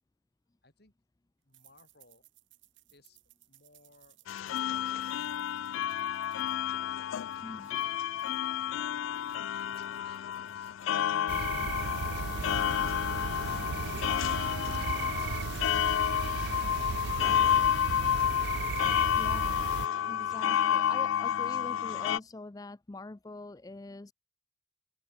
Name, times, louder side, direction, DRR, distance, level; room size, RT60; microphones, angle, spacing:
voice 1, 0.6-0.9 1.4-2.2 2.9-3.2 3.5-8.0 8.5-10.7 11.4-18.0 18.5-19.1, left 2 dB, 55° left, 5.3 m, -62 dB
sound 1, 1.5-8.7 9.0-12.6 13.0-13.1 13.4-15.8 16.1-16.5 16.8-17.2, right 16 dB, 80° right, 2.5 m, -65 dB
sound 2, 4.3-22.2, left 9 dB, 90° left, 0.3 m, -30 dB
sound 3, 11.3-19.9, right 6 dB, 55° right, 0.3 m, -36 dB
voice 2, 19.2-19.6 20.1-24.1, left 2 dB, 20° left, 0.4 m, -44 dB
open air
head